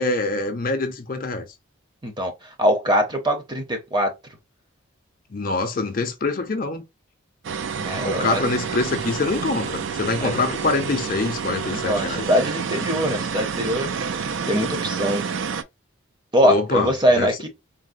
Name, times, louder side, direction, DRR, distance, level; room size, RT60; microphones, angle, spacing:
voice 1, 0.0-1.5 5.3-6.8 8.0-12.3 16.4-17.3, left 3 dB, 40° left, 0.5 m, -25 dB
voice 2, 2.0-4.1 7.8-8.4 10.2-10.3 11.9-13.9 14.5-15.2 16.3-17.5, equal, 20° right, 0.7 m, -22 dB
sound 1, 7.4-15.6, right 6 dB, 60° right, 0.4 m, -29 dB
3.9 x 2.0 x 2.5 m
head